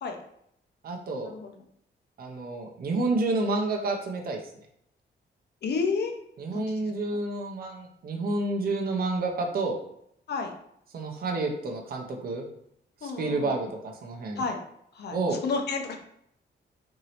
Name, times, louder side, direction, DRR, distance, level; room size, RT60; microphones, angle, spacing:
voice 1, 0.8-1.3 2.2-4.4 6.4-9.8 10.9-12.5 13.0-14.4 15.1-15.4, right 2 dB, 55° right, 1 dB, 0.5 m, -29 dB
voice 2, 5.6-6.1 6.5-6.9 10.3-10.5 13.0-13.6 14.4-14.6 14.9-16.0, left 4 dB, 65° left, 4 dB, 0.6 m, -31 dB
3.0 x 2.7 x 2.8 m, 0.73 s
wide cardioid pair, 120°, 19 cm